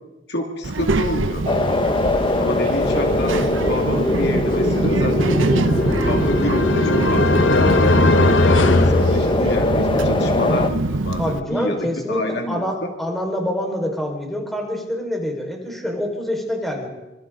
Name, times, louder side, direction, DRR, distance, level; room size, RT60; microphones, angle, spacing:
voice 1, 0.3-1.5 2.3-5.4 5.8-12.9, left 1 dB, 60° left, 2 dB, 2.5 m, -28 dB
Child speech kid speaking, 0.6-11.4, right 2 dB, 85° right, 0.9 m, -24 dB
sound 1, 1.5-10.7, left 2 dB, 25° left, 0.9 m, -21 dB
sound 2, 5.4-9.9, left 2 dB, 75° left, 1.3 m, -19 dB
voice 2, 11.2-16.9, left 1 dB, ahead, 0 dB, 4.9 m, -26 dB
26.0 x 26.0 x 3.9 m, 1.0 s
head